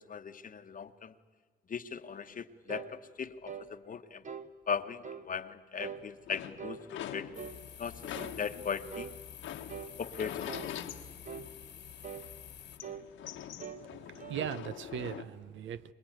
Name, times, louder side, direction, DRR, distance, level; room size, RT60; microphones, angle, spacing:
voice 1, 0.1-1.1 1.7-4.2 4.7-7.3 7.8-9.1 10.0-10.7, left 6 dB, 45° left, 11 dB, 1.1 m, -38 dB
sound 1, 2.7-2.9 3.5-3.7 4.2-4.5 5.0-5.3 5.8-6.0 6.6-6.8 7.3-7.6 8.1-8.4 8.9-9.1 9.7-10.0 10.5-10.7 11.2-11.5 12.0-12.3 12.8-13.1 13.6-13.9 14.2-14.6, right 7 dB, 40° right, 1.2 m, -43 dB
sound 2, 5.9-7.7 8.0-11.9 12.2-15.2, left 10 dB, 85° left, 1.5 m, -44 dB
sound 3, 7.3-12.8, left 8 dB, 60° left, 1.5 m, -49 dB
voice 2, 13.8-15.9, right 9 dB, 75° right, 15 dB, 0.9 m, -39 dB
25.0 x 20.5 x 9.1 m, 1.6 s
cardioid pair, 90°, 20 cm